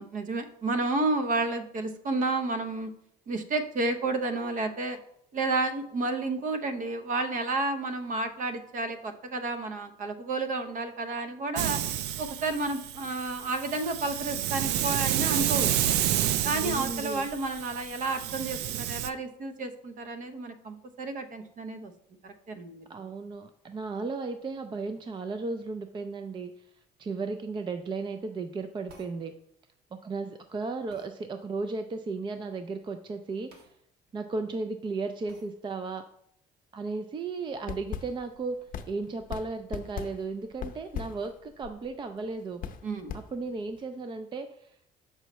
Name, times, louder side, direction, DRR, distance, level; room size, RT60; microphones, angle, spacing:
voice 1, 0.0-2.9 3.3-5.0 5.3-11.8 12.2-15.7 16.4-21.9 22.2-22.9 42.8-43.2, right 2 dB, 50° right, 8 dB, 0.8 m, -31 dB
Hiss, 11.6-19.1, right 11 dB, 90° right, 0.4 m, -30 dB
voice 2, 16.5-17.3 22.9-26.5 27.0-29.3 30.0-33.6 34.1-36.0 36.7-42.6 43.3-44.7, right 3 dB, 30° right, 8 dB, 0.4 m, -35 dB
sound 1, 28.9-29.2 30.9-31.1 33.5-33.7 34.1-34.2 35.3-35.5, right 2 dB, 70° right, 1.5 m, -54 dB
sound 2, 37.6-43.8, left 8 dB, 55° left, 0.6 m, -41 dB
6.8 x 5.5 x 3.1 m, 0.73 s
cardioid pair, 110°, 17 cm